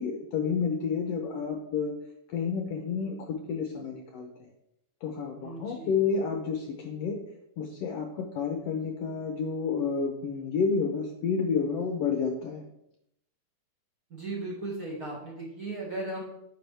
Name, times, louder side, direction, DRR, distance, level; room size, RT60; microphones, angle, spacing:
voice 1, 0.0-1.9 2.3-3.2 3.5-4.3 5.0-7.2 7.6-12.6, left 5 dB, 70° left, 3 dB, 1.7 m, -30 dB
voice 2, 5.4-6.0 14.1-16.2, right 2 dB, 30° right, -4 dB, 2.2 m, -36 dB
9.5 x 6.7 x 3.4 m, 0.79 s
omnidirectional pair, 3.4 m